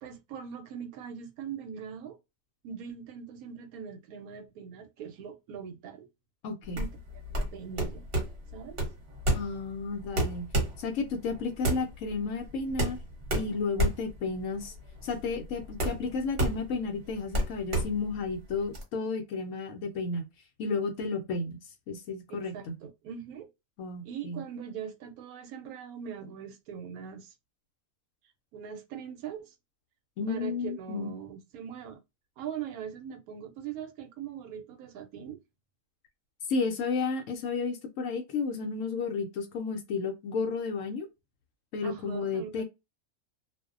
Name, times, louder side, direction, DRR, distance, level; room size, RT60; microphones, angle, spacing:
voice 1, 0.0-2.2 2.6-6.1 6.8-6.9 7.3-8.1 8.5-8.8 22.3-23.5 24.0-27.3 28.5-29.5 30.3-32.0 32.4-35.4 41.8-42.6, right 8 dB, 80° right, 1.0 m, -41 dB
voice 2, 6.4-6.8 9.3-10.5 10.8-13.0 13.3-14.7 15.0-20.3 20.6-21.6 21.9-22.7 23.8-24.4 30.2-31.1 36.5-41.1 41.7-42.6, left 4 dB, 70° left, 0.8 m, -32 dB
sound 1, 6.7-18.8, right 1 dB, 45° right, 1.0 m, -31 dB
2.5 x 2.0 x 2.4 m
omnidirectional pair, 1.5 m